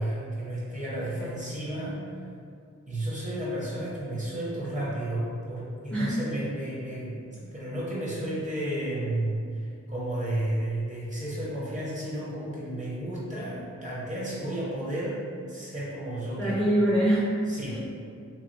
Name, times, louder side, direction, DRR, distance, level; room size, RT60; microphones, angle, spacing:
voice 1, 0.0-2.0 2.9-16.6 17.5-17.8, right 1 dB, 25° right, -7 dB, 0.8 m, -32 dB
voice 2, 1.0-1.3 5.9-6.2 16.4-17.3 17.7-17.8, right 1 dB, 5° left, -8 dB, 0.5 m, -25 dB
2.9 x 2.3 x 2.7 m, 2.3 s
wide cardioid pair, 90°, 30 cm